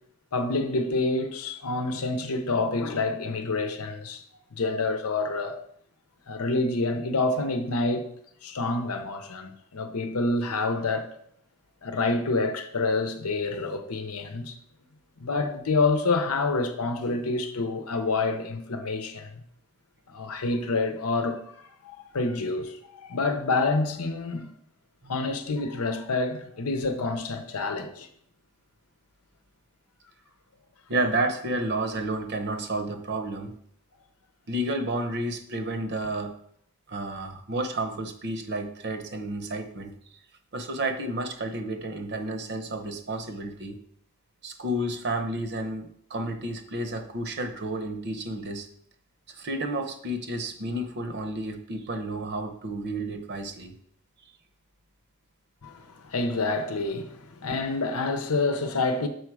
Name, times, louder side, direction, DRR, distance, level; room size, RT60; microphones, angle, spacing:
voice 1, 0.3-4.2 4.5-5.6 6.3-8.1 8.4-11.1 11.8-14.6 15.2-19.4 20.1-24.5 25.1-28.1 55.6-59.1, left 3 dB, 90° left, 0.8 m, -28 dB
voice 2, 30.9-33.5 34.5-36.3 36.9-40.2 40.5-43.8 44.4-48.7 49.3-53.7, right 1 dB, 50° right, 0.8 m, -31 dB
6.4 x 5.1 x 4.8 m
head